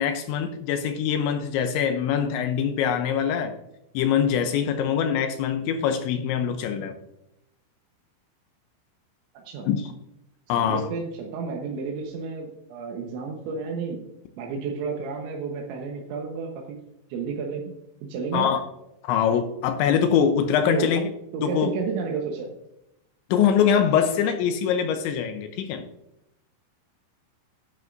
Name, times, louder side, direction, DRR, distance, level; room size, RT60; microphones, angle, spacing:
voice 1, 0.0-3.5 3.9-7.0 9.7-9.9 10.5-10.9 18.3-18.6 19.0-21.1 21.4-21.7 23.3-25.8, left 8 dB, 80° left, 7 dB, 2.9 m, -23 dB
voice 2, 9.3-9.7 10.6-14.0 14.4-16.8 17.1-17.7 18.0-18.5 20.7-20.9 21.3-22.5, right 5 dB, 75° right, 0 dB, 3.4 m, -31 dB
11.0 x 10.5 x 2.6 m, 0.84 s
omnidirectional pair, 5.6 m